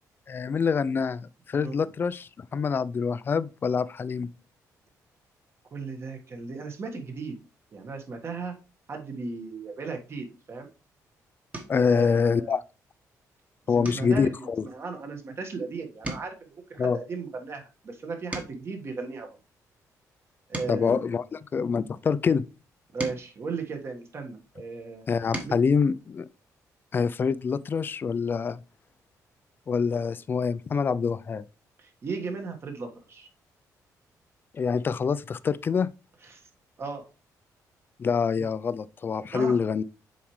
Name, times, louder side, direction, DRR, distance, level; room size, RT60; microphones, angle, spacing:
voice 1, 0.3-4.3 11.7-12.6 13.7-14.6 16.8-17.0 20.7-22.4 25.1-26.3 26.9-28.6 29.7-31.4 34.5-35.9 38.0-39.8, left 5 dB, 35° left, 0.4 m, -26 dB
voice 2, 5.7-7.4 7.7-8.5 8.9-10.7 11.9-12.6 13.7-19.4 20.5-21.1 22.9-25.0 25.4-25.5 31.8-33.3 36.2-36.4 36.8-37.0 38.4-38.5 39.3-39.6, right 4 dB, 40° right, 1.5 m, -36 dB
sound 1, 11.5-11.9 12.4-12.8 13.1-13.3 13.8-15.6 15.9-18.8 19.4-21.9 22.6-24.4 25.0-25.7 27.1-27.2 27.5-27.7, right 2 dB, 20° right, 1.3 m, -41 dB
7.2 x 4.6 x 3.1 m
cardioid pair, 120°, 7 cm